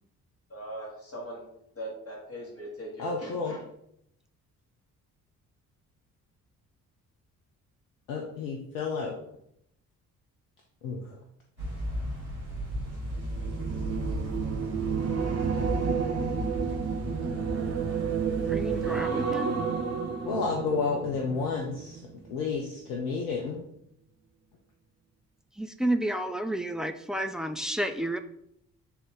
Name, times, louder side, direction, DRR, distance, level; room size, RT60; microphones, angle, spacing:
voice 1, 0.5-1.4 1.7-3.6, right 1 dB, 35° left, -2 dB, 2.6 m, -40 dB
voice 2, 3.0-3.5 8.1-9.2 10.8-11.0 20.2-22.0 22.3-23.6, left 4 dB, 70° left, 0 dB, 0.9 m, -31 dB
sound 1, 11.6-19.0, equal, 90° left, 1.7 m, -36 dB
sound 2, 12.9-22.3 22.7-23.0, right 6 dB, 35° right, 0.9 m, -31 dB
voice 3, 18.5-19.6 25.6-28.2, right 1 dB, ahead, 8 dB, 0.3 m, -31 dB
8.1 x 3.4 x 3.7 m, 0.75 s
figure-of-eight pair, 40°, 43 cm